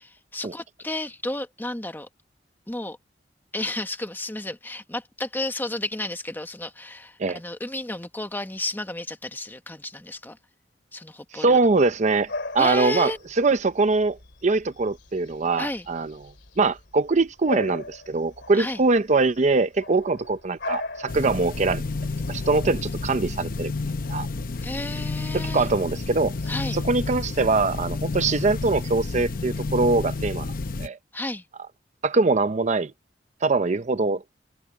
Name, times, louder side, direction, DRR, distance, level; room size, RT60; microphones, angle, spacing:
voice 1, 0.0-2.1 2.7-3.0 3.5-10.4 10.9-11.6 12.6-13.2 15.6-15.9 18.5-18.8 24.6-25.7 26.5-26.8 31.1-31.4, left 2 dB, 10° left, 1.3 m, -32 dB
voice 2, 11.3-12.3 12.5-16.1 16.6-21.8 22.3-23.7 24.1-24.3 25.3-26.3 26.7-30.5 30.8-31.0 32.0-32.9 33.4-34.2, right 3 dB, 40° right, 0.6 m, -23 dB
Bark / Bird vocalization bird call bird song, 11.6-29.2, left 2 dB, 90° left, 2.5 m, -41 dB
sound 1, 21.1-30.9, left 3 dB, 55° left, 0.8 m, -30 dB
head